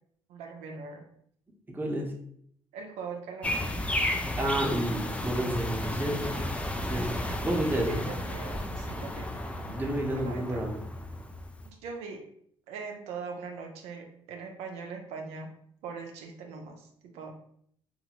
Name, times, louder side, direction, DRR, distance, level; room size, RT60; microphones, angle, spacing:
voice 1, 0.3-1.0 2.7-3.8 7.3-7.4 7.9-9.3 10.1-10.7 11.7-12.3 12.7-15.5 15.8-17.3, right 5 dB, 85° right, 3 dB, 0.5 m, -41 dB
voice 2, 1.7-2.1 4.4-6.4 6.8-7.1 7.4-8.0 9.7-10.8, right 1 dB, 20° right, -1 dB, 0.8 m, -30 dB
sound 1, 3.4-11.7, left 1 dB, 10° left, 0.4 m, -33 dB
2.6 x 2.4 x 2.9 m, 0.67 s
supercardioid pair, 75°, 11 cm